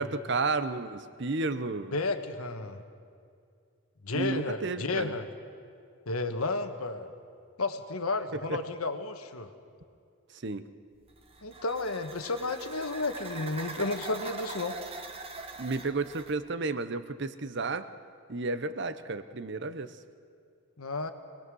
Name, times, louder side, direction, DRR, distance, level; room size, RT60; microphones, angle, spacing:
voice 1, 0.0-1.9 4.1-5.1 8.5-8.6 10.3-10.6 15.6-17.9 18.3-20.0, right 3 dB, 55° right, 12 dB, 0.8 m, -32 dB
voice 2, 1.9-2.8 4.0-5.3 6.1-7.1 7.6-9.5 11.4-14.8 20.8-21.1, left 3 dB, 90° left, 8 dB, 1.4 m, -32 dB
sound 1, 11.1-16.4, right 3 dB, 25° right, 1.3 m, -42 dB
25.5 x 19.0 x 6.3 m, 2.3 s
head